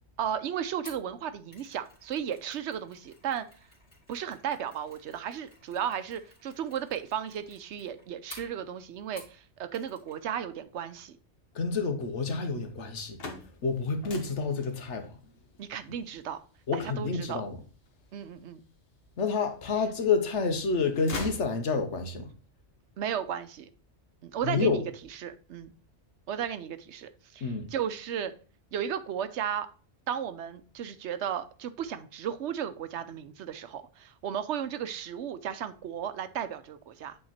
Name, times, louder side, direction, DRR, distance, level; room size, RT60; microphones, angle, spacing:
voice 1, 0.2-3.5 4.1-11.2 15.6-16.4 16.8-17.4 18.1-18.6 23.0-23.7 24.2-24.8 25.1-25.7 26.3-28.3 28.7-29.7 30.1-37.2, right 9 dB, 80° right, 1.0 m, -34 dB
Mechanisms, 0.8-9.4 9.7-10.2 10.4-10.6, left 2 dB, 40° left, 2.4 m, -54 dB
voice 2, 11.5-13.2 13.6-15.1 16.7-17.6 19.2-22.3 24.4-24.8 27.4-27.6, left 4 dB, 90° left, 1.4 m, -29 dB
sound 1, 13.1-18.8 19.4-20.2 20.5-22.1, left 3 dB, 60° left, 1.4 m, -43 dB
8.7 x 3.7 x 4.2 m
omnidirectional pair, 1.2 m